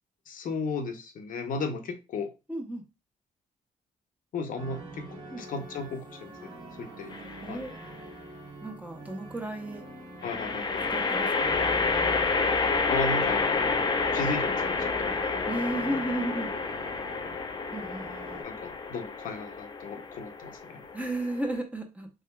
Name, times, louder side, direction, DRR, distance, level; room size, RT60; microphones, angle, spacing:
voice 1, 0.3-2.3 4.3-5.1 5.4-6.5 6.8-7.1 7.5-7.6 10.2-10.9 12.9-13.5 14.1-15.4 18.4-20.8, left 4 dB, 70° left, 5 dB, 0.7 m, -35 dB
voice 2, 2.5-2.8 5.3-5.4 7.4-7.7 8.6-9.9 10.9-11.7 15.5-16.5 17.7-18.1 20.9-22.1, right 1 dB, 10° right, 3 dB, 0.8 m, -33 dB
sound 1, 4.6-18.4, right 2 dB, 35° right, 1.3 m, -45 dB
sound 2, 7.1-7.7 10.2-21.6, left 4 dB, 30° left, 0.5 m, -29 dB
3.6 x 3.3 x 2.2 m, 0.28 s
cardioid pair, 90°, 14 cm